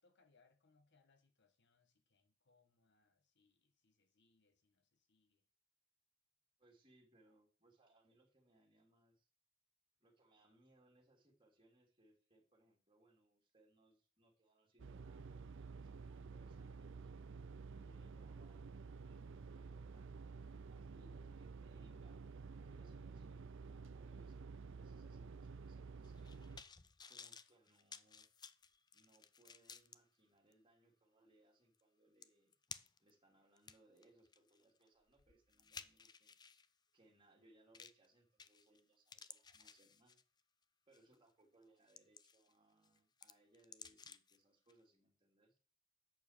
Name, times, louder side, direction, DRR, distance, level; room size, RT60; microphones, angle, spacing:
voice 1, 0.0-5.4, left 4 dB, 60° left, 1.7 m, -76 dB
voice 2, 6.6-9.3 10.0-17.1 17.7-22.2 22.5-26.3 27.1-28.3 28.9-32.5 33.0-36.3 36.9-40.2 40.9-45.6, right 1 dB, 25° right, 3.2 m, -71 dB
sound 1, 14.8-26.6, right 4 dB, 65° right, 0.5 m, -51 dB
sound 2, 26.0-30.0 30.5-30.6 31.8-31.9 32.2-33.1 33.6-36.7 37.7-38.1 38.4-38.8 39.1-40.4 40.9-41.1 41.6-42.5 42.8-44.4 44.7-44.8, left 6 dB, 20° left, 0.5 m, -56 dB
8.3 x 6.8 x 6.9 m
head